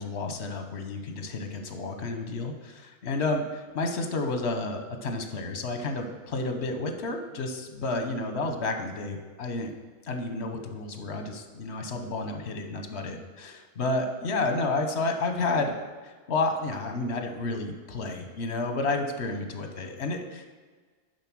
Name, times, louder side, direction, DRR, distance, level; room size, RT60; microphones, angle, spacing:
voice 1, 0.0-9.7 10.0-15.7 16.0-20.5, left 3 dB, 75° left, 5 dB, 1.2 m, -31 dB
7.4 x 5.4 x 6.1 m, 1.5 s
omnidirectional pair, 1.1 m